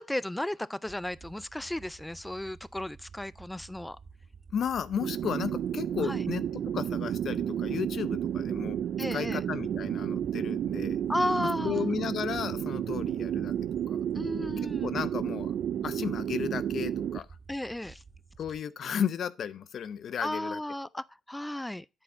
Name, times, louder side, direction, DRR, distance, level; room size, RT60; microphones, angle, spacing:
voice 1, 0.0-4.0 6.0-6.2 9.0-9.4 11.1-11.9 14.1-15.0 17.5-18.0 20.2-21.9, left 1 dB, 10° left, 0.4 m, -34 dB
sound 1, 0.8-18.6, right 5 dB, 45° right, 2.5 m, -52 dB
voice 2, 4.5-8.8 9.1-11.0 11.6-13.6 13.9-14.0 14.8-15.5 15.8-17.3 18.4-20.6, left 8 dB, 60° left, 0.6 m, -34 dB
sound 2, 5.0-17.2, right 10 dB, 65° right, 0.3 m, -31 dB
9.9 x 4.3 x 4.3 m
cardioid pair, 90°, 0 cm